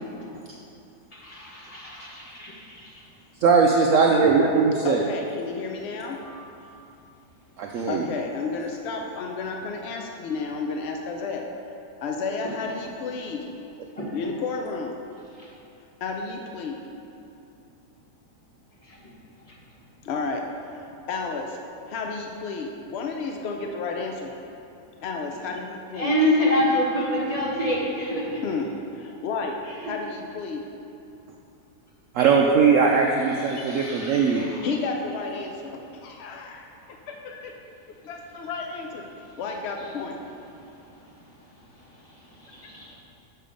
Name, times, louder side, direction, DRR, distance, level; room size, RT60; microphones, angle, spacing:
voice 1, 1.1-2.9 4.1-4.2 6.1-6.4 14.0-14.1 15.4-15.5 18.8-19.0 25.9-28.4 29.8-29.9 33.3-34.6 42.0-42.9, left 1 dB, 25° left, -6 dB, 1.6 m, -27 dB
voice 2, 3.4-5.0 7.6-8.1 32.2-34.5, right 5 dB, 70° right, 0 dB, 0.8 m, -19 dB
voice 3, 4.8-6.2 7.9-11.5 12.0-13.5 14.1-14.9 16.0-16.8 20.0-20.4 20.7-21.6 21.9-24.3 25.0-26.1 28.4-28.7 28.9-29.6 29.9-30.6 34.6-37.5 38.0-39.0 39.4-40.2, left 4 dB, 70° left, 2 dB, 0.6 m, -32 dB
6.8 x 6.5 x 5.1 m, 2.8 s
omnidirectional pair, 1.7 m